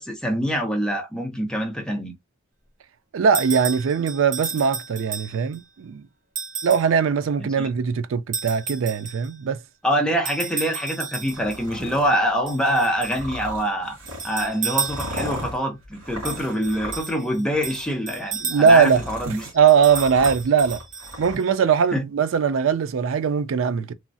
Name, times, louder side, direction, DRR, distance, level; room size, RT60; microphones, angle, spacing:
voice 1, 0.0-2.1 7.6-7.7 9.8-14.0 14.2-19.4 21.9-22.0, equal, 5° left, 0.7 m, -25 dB
voice 2, 3.1-6.0 6.6-9.6 18.4-20.8 21.2-23.9, right 6 dB, 70° right, 0.4 m, -20 dB
sound 1, 3.3-5.6 6.4-6.9 8.3-9.3 10.2-11.6 12.5-13.3 14.1-15.5 16.2-19.0 19.7-21.4, right 5 dB, 35° right, 0.7 m, -33 dB
sound 2, 11.2-12.1 13.0-17.2 17.5-17.9 18.4-21.4, equal, 85° right, 1.7 m, -37 dB
3.1 x 2.3 x 2.6 m
head